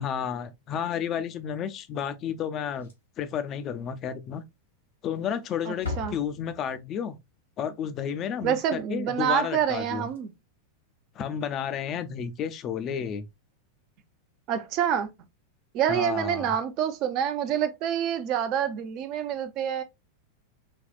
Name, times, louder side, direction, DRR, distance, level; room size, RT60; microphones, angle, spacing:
voice 1, 0.0-2.9 3.2-4.4 5.0-7.2 7.6-10.1 11.2-13.3 15.9-16.5, left 8 dB, 30° left, 0.6 m, -32 dB
Slam, 2.6-3.3 3.6-3.7 4.1-4.2 5.0-5.4 5.7-7.0 9.6-9.7 10.0-10.2 11.7-11.9, left 4 dB, 75° left, 1.6 m, -39 dB
voice 2, 5.7-6.2 8.4-10.3 14.5-15.1 15.7-19.8, right 9 dB, 40° right, 0.7 m, -27 dB
5.3 x 2.4 x 2.3 m
figure-of-eight pair, 90°, 0 cm